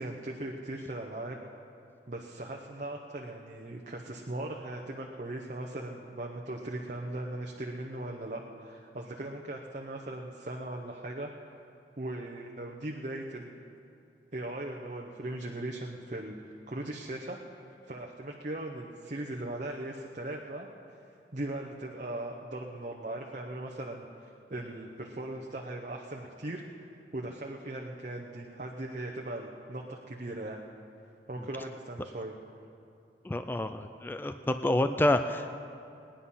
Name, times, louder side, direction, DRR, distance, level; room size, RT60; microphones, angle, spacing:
voice 1, 0.0-1.4 2.1-11.3 12.0-13.6 14.3-16.4 16.7-17.4 17.9-20.7 21.3-26.6 27.1-30.6 31.3-32.3, right 1 dB, 45° right, 0 dB, 0.9 m, -39 dB
voice 2, 33.2-35.6, left 1 dB, 10° left, 9 dB, 0.3 m, -28 dB
19.0 x 10.0 x 5.6 m, 2.6 s
head